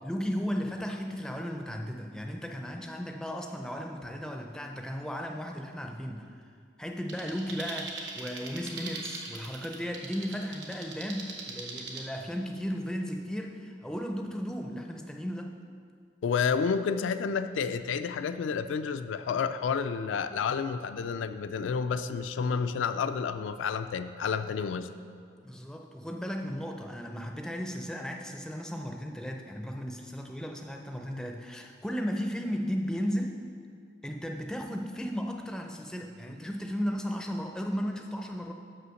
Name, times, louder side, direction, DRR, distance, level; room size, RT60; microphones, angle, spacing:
voice 1, 0.0-6.3 6.8-15.6 25.4-33.4 34.0-38.5, equal, 5° left, 3 dB, 0.4 m, -35 dB
sound 1, 7.1-12.1, right 3 dB, 65° right, 1.0 m, -41 dB
voice 2, 16.2-24.9, left 6 dB, 80° left, 10 dB, 0.3 m, -30 dB
5.7 x 5.5 x 6.3 m, 2.2 s
head